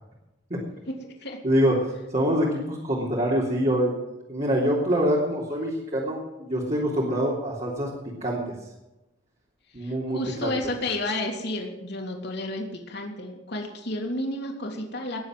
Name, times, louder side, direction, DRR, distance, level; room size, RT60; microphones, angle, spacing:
voice 1, 0.7-1.4 9.8-15.2, left 1 dB, 60° left, 2 dB, 3.1 m, -32 dB
voice 2, 1.4-4.0 4.3-7.9 8.2-8.5 9.7-10.5, equal, 40° right, -4 dB, 3.3 m, -25 dB
20.0 x 7.5 x 7.7 m, 0.97 s
head